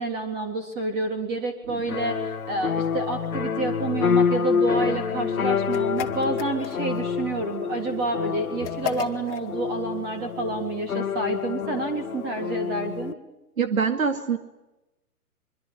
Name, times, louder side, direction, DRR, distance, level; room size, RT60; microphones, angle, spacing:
voice 1, 0.0-13.2, right 2 dB, 20° right, 6 dB, 3.5 m, -29 dB
sound 1, 1.9-13.1, left 6 dB, 65° left, 1.1 m, -27 dB
sound 2, 5.7-7.0 8.6-9.5, left 11 dB, 25° left, 2.2 m, -34 dB
voice 2, 13.6-14.4, right 6 dB, 60° right, 8 dB, 2.4 m, -24 dB
25.0 x 24.0 x 9.8 m, 0.99 s
figure-of-eight pair, 120°, 46 cm